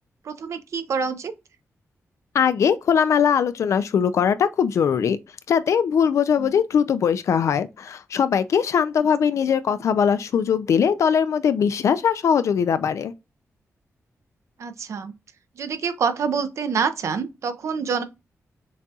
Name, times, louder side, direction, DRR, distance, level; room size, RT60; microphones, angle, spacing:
voice 1, 0.2-1.3 6.4-6.6 14.6-15.1 15.6-18.0, right 6 dB, 65° right, 0.6 m, -26 dB
voice 2, 2.3-5.2 5.5-13.1, left 7 dB, 65° left, 0.3 m, -21 dB
6.3 x 2.3 x 2.7 m
wide cardioid pair, 175°, 6 cm